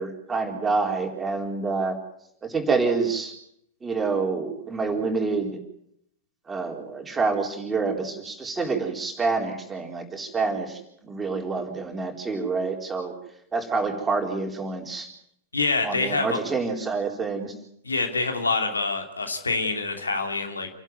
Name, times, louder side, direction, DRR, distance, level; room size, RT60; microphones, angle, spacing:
voice 1, 0.0-1.9 2.4-3.3 3.8-5.6 6.5-13.1 13.5-15.1 15.8-17.5, right 4 dB, 15° right, 3 dB, 4.1 m, -27 dB
voice 2, 15.5-16.4 17.8-20.7, left 3 dB, 80° left, 5 dB, 2.8 m, -26 dB
28.0 x 12.0 x 9.4 m, 0.73 s
figure-of-eight pair, 95°, 0 cm